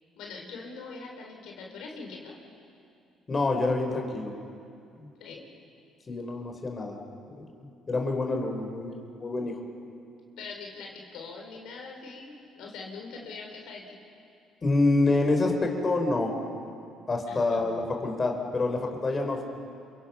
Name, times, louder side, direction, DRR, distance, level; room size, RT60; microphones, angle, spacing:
voice 1, 0.2-2.3 5.2-5.4 10.4-14.0 17.3-17.7, left 4 dB, 80° left, 0 dB, 4.3 m, -42 dB
voice 2, 3.3-4.3 5.0-5.1 6.1-7.0 7.3-7.5 7.9-9.6 14.6-16.3 17.1-19.4, left 2 dB, 30° left, 2 dB, 4.2 m, -27 dB
29.5 x 23.5 x 5.9 m, 2.5 s
supercardioid pair, 80°, 0 cm